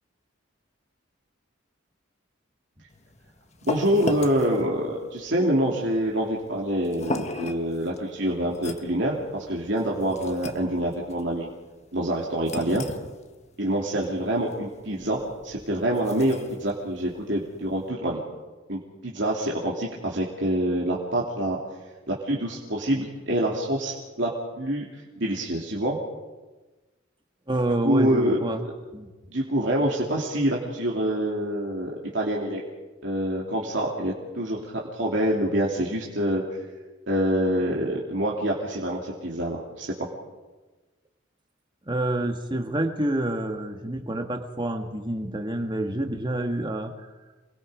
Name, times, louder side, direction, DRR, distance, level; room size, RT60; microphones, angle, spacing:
sound 1, 2.9-17.9, left 2 dB, 35° left, 1.4 m, -38 dB
voice 1, 3.6-11.5 11.9-12.8 13.6-18.2 18.7-21.6 22.1-24.3 24.6-24.9 25.1-26.0 27.8-28.7 29.3-32.6 33.0-36.4 37.1-39.9, right 1 dB, 60° right, -3 dB, 3.0 m, -26 dB
voice 2, 27.5-28.6 28.9-29.1 41.9-47.1, right 1 dB, 20° right, 5 dB, 1.8 m, -28 dB
28.0 x 21.0 x 5.2 m, 1.2 s
head